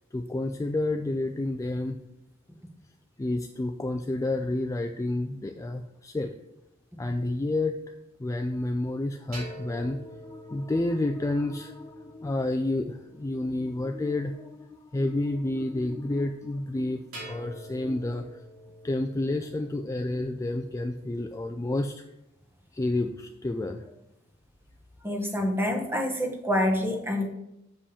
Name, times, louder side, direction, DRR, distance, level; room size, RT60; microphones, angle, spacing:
voice 1, 0.1-2.0 3.2-6.3 7.0-7.8 8.2-18.4 18.8-22.0 22.7-23.9, left 2 dB, 15° left, 5 dB, 0.3 m, -30 dB
sound 1, 9.3-13.6 17.1-21.0, equal, 85° right, 2.7 m, -46 dB
voice 2, 25.0-27.3, left 1 dB, 10° right, 2 dB, 1.1 m, -27 dB
7.0 x 5.2 x 5.0 m, 0.88 s
head